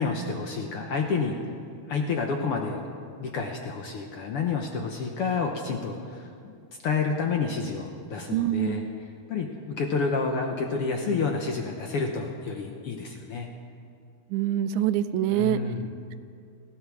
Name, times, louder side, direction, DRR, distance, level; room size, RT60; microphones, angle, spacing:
voice 1, 0.0-1.4 1.9-2.8 3.2-6.5 6.8-8.8 9.3-13.5 15.3-15.9, left 4 dB, 65° left, 2 dB, 1.6 m, -29 dB
voice 2, 8.3-8.8 14.3-15.6, right 11 dB, 85° right, 12 dB, 2.0 m, -25 dB
19.0 x 15.0 x 4.8 m, 2.3 s
omnidirectional pair, 3.3 m